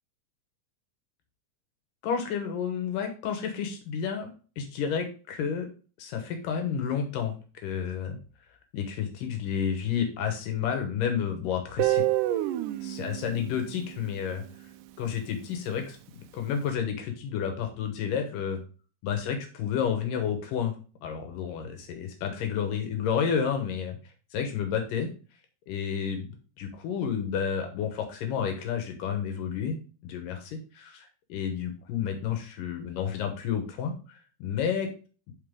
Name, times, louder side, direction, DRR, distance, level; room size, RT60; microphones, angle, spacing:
voice 1, 2.0-4.3 4.6-5.7 6.0-7.4 7.6-8.2 8.7-12.0 12.8-14.4 15.0-16.0 16.3-18.6 19.0-20.7 21.0-24.0 24.3-25.1 25.7-34.9, left 7 dB, 85° left, 5 dB, 2.8 m, -30 dB
Guitar, 11.8-14.7, right 15 dB, 85° right, 2.1 m, -29 dB
11.5 x 4.1 x 3.7 m, 0.36 s
omnidirectional pair, 3.8 m